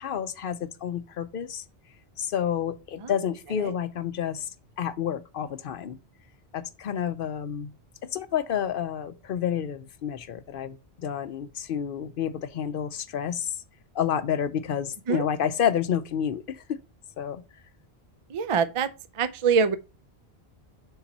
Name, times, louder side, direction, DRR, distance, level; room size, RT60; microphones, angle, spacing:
voice 1, 0.0-1.6 2.2-4.5 4.8-6.0 6.5-7.7 8.0-13.5 13.9-16.8 17.2-17.4, left 9 dB, 60° left, 0.7 m, -29 dB
voice 2, 18.3-18.9 19.2-19.7, right 6 dB, 45° right, 0.4 m, -24 dB
7.0 x 4.0 x 4.0 m
omnidirectional pair, 1.1 m